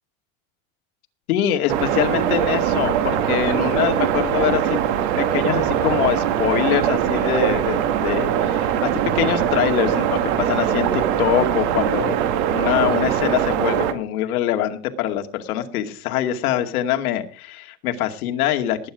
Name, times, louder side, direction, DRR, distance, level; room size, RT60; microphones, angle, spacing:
voice 1, 1.3-4.8 5.2-12.2 12.5-18.9, left 11 dB, 80° left, 6 dB, 2.4 m, -24 dB
sound 1, 1.7-13.9, right 10 dB, 50° right, 2.0 m, -21 dB
19.5 x 9.6 x 4.9 m, 0.37 s
supercardioid pair, 180°, 43 cm